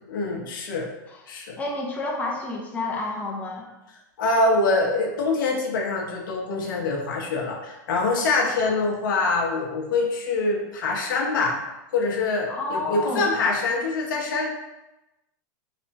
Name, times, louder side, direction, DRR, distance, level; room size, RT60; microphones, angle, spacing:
voice 1, 0.1-0.9 1.3-1.6 4.2-11.6 11.9-14.5, left 3 dB, 80° left, 0 dB, 1.0 m, -24 dB
voice 2, 1.6-3.7 8.5-8.8 12.5-13.3, left 2 dB, 15° left, -2 dB, 0.8 m, -30 dB
4.1 x 3.3 x 2.8 m, 0.99 s
supercardioid pair, 125°, 11 cm